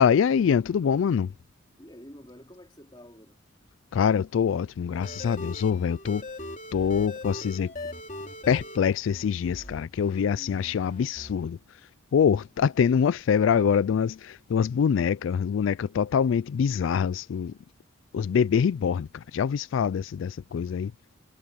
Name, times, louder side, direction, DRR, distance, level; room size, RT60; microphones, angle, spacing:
voice 1, 0.0-1.3 3.9-6.2 6.7-7.7 8.5-11.6 12.1-17.5 18.1-20.9, left 7 dB, 70° left, 0.3 m, -24 dB
voice 2, 1.8-3.4 10.2-10.6, equal, 20° left, 3.3 m, -49 dB
sound 1, 4.9-10.2 10.5-11.3, left 1 dB, 40° left, 3.0 m, -40 dB
head